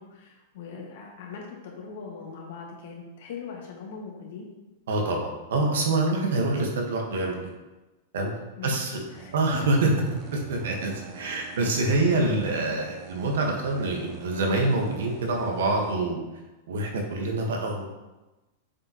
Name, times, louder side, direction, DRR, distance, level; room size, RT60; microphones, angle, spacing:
voice 1, 0.0-4.5 8.6-9.4 11.6-11.7 12.0-12.1, left 5 dB, 70° left, -1 dB, 1.8 m, -41 dB
voice 2, 4.9-7.5 8.1-8.3 8.6-9.0 9.3-9.9 10.3-16.2 16.7-17.9, right 2 dB, 85° right, 1 dB, 1.5 m, -26 dB
sound 1, 9.1-16.0, right 6 dB, 35° right, 0.6 m, -46 dB
7.2 x 4.9 x 3.1 m, 1.1 s
supercardioid pair, 150°, 0 cm